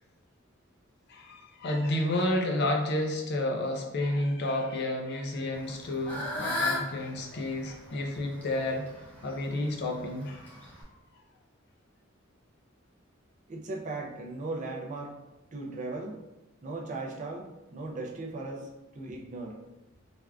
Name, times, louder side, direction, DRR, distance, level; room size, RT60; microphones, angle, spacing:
voice 1, 1.1-8.9 9.2-10.4, left 1 dB, 55° left, 2 dB, 0.4 m, -30 dB
Fowl / Bird, 5.5-10.8, left 2 dB, 5° left, 0.6 m, -36 dB
voice 2, 13.5-15.2 15.5-16.2 16.6-19.6, right 2 dB, 35° right, 0 dB, 0.4 m, -37 dB
3.3 x 2.4 x 2.3 m, 0.98 s
head